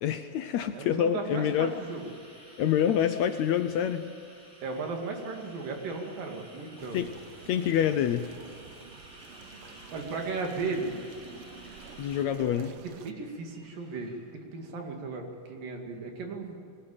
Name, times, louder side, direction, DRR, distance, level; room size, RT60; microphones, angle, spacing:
voice 1, 0.0-1.8 2.6-4.1 6.9-7.1 7.5-8.3 12.0-12.7, left 9 dB, 75° left, 9 dB, 1.7 m, -27 dB
voice 2, 0.7-2.0 4.6-7.0 9.9-10.9 12.4-14.2 14.5-16.6, right 4 dB, 85° right, 2 dB, 4.0 m, -36 dB
sound 1, 0.8-14.2, equal, 25° right, 5.3 m, -53 dB
sound 2, 6.8-13.1, right 6 dB, 65° right, 1.4 m, -50 dB
20.5 x 19.5 x 8.9 m, 2.1 s
omnidirectional pair, 3.8 m